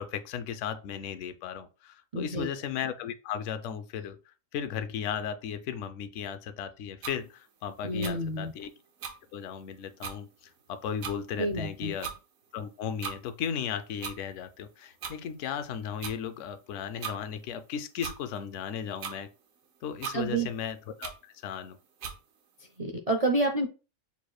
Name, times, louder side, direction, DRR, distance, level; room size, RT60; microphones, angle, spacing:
voice 1, 0.0-8.7 9.3-10.3 10.7-12.1 12.5-19.3 19.8-21.8, left 8 dB, 70° left, 0.9 m, -36 dB
voice 2, 2.1-2.5 7.8-8.5 11.4-11.9 20.1-20.5 22.8-23.7, right 2 dB, 60° right, 0.4 m, -29 dB
sound 1, 7.0-7.2 8.0-8.1 9.0-9.1 9.7-9.8 10.0-10.2 11.0-11.2 12.0-12.2 13.0-13.2 14.0-14.2 15.0-15.2 16.0-16.1 17.0-17.2 18.0-18.2 19.0-19.2 20.0-20.2 21.0-21.1 22.0-22.2, right 7 dB, 80° right, 1.2 m, -37 dB
6.8 x 3.1 x 2.3 m
omnidirectional pair, 1.4 m